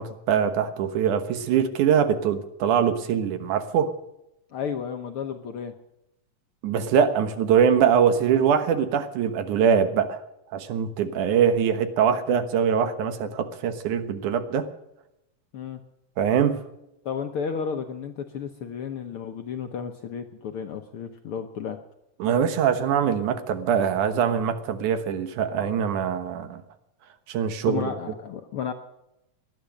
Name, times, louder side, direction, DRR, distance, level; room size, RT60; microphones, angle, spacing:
voice 1, 0.0-3.9 6.6-10.2 10.5-14.7 16.2-16.6 22.2-26.6 27.3-27.8, right 7 dB, 80° right, 10 dB, 2.7 m, -23 dB
voice 2, 4.5-5.7 15.5-15.8 17.0-21.8 27.7-28.7, left 7 dB, 65° left, 6 dB, 1.4 m, -32 dB
19.0 x 11.0 x 6.4 m, 0.87 s
omnidirectional pair, 3.5 m